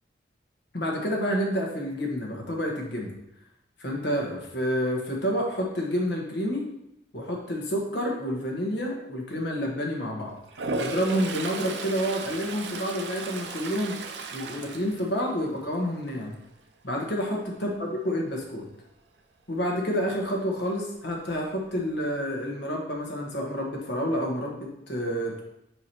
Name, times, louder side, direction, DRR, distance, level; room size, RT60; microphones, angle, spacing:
voice 1, 0.7-3.1 3.8-6.7 7.1-10.3 10.8-14.0 14.3-16.4 16.8-18.6 19.5-25.4, equal, 75° left, -1 dB, 1.5 m, -29 dB
Toilet flush, 10.5-15.7 16.1-16.5 20.9-21.0 21.3-22.0, right 3 dB, 75° right, 0.6 m, -35 dB
5.1 x 4.7 x 4.4 m, 0.83 s
head